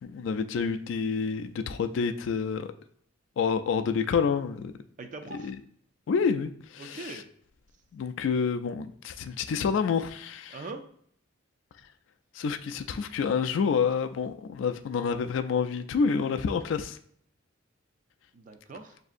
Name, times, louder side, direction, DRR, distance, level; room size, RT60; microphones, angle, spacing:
voice 1, 0.0-2.7 3.4-4.7 5.4-5.6 6.1-7.2 7.9-10.6 12.3-17.0, left 6 dB, 65° left, 0.3 m, -28 dB
voice 2, 5.0-5.5 6.8-7.3 10.5-10.8 18.3-19.0, right 3 dB, 40° right, 0.4 m, -41 dB
6.1 x 2.6 x 2.4 m
head